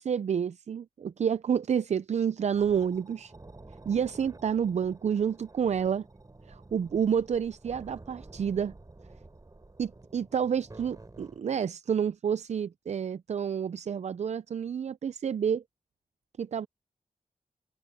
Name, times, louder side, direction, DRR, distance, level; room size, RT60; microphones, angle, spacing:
voice 1, 0.0-3.3 3.9-6.0 6.5-8.7 9.8-15.6 16.4-16.7, right 7 dB, 55° right, 0.4 m, -29 dB
sound 1, 2.5-11.4, right 2 dB, 25° right, 4.6 m, -50 dB
open air
wide cardioid pair, 145°, 14 cm